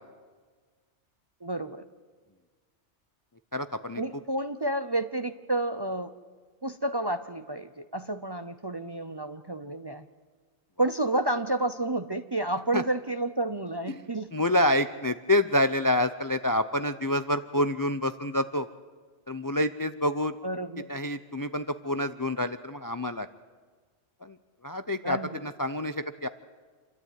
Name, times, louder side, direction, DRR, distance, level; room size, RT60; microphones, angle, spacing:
voice 1, 1.4-1.8 4.0-6.1 6.6-10.1 10.8-14.3 20.4-20.9 25.0-25.4, right 2 dB, 30° right, 9 dB, 0.6 m, -30 dB
voice 2, 3.5-4.0 12.7-12.8 14.3-18.7 19.3-20.3 20.9-23.3 24.2-24.3 24.6-26.3, left 1 dB, 30° left, 11 dB, 0.4 m, -27 dB
27.5 x 13.0 x 9.2 m, 1.5 s
omnidirectional pair, 1.2 m